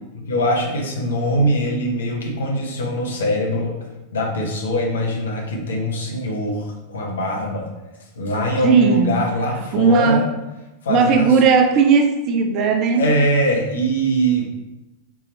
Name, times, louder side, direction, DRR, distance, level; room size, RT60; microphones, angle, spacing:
voice 1, 0.1-7.7 8.0-10.3 10.8-11.4 12.9-14.5, equal, 65° left, -1 dB, 1.0 m, -22 dB
voice 2, 8.6-9.1 9.7-10.2 10.9-13.1, right 5 dB, 35° right, 6 dB, 0.5 m, -16 dB
4.8 x 2.9 x 3.9 m, 1.0 s
figure-of-eight pair, 90°, 0 cm